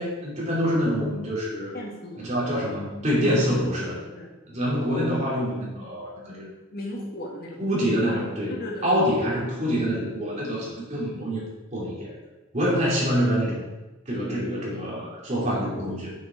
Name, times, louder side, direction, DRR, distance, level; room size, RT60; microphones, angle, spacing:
voice 1, 0.0-1.7 2.2-4.0 4.5-6.5 7.6-8.5 8.8-11.4 11.7-12.1 12.5-13.6 14.1-16.1, equal, 35° right, -5 dB, 2.8 m, -26 dB
voice 2, 1.7-2.3 4.1-4.3 6.7-7.6 8.5-9.0, left 1 dB, 50° left, -1 dB, 1.5 m, -35 dB
7.4 x 6.8 x 4.4 m, 1.1 s
head